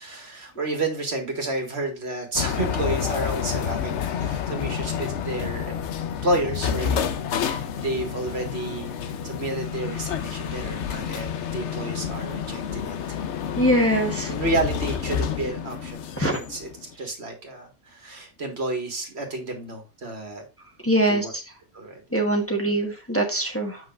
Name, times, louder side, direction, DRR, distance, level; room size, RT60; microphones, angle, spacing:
voice 1, 0.0-5.8 6.2-13.0 13.7-13.8 14.3-20.4 21.1-21.3 21.7-22.0, right 2 dB, 65° right, 3 dB, 2.0 m, -31 dB
sound 1, 2.4-16.9, left 8 dB, 80° left, 1.1 m, -29 dB
voice 2, 13.6-14.3 16.2-16.4 20.8-21.2 22.1-23.8, right 1 dB, 10° left, 1 dB, 1.3 m, -22 dB
7.5 x 5.9 x 2.5 m, 0.30 s
omnidirectional pair, 1.2 m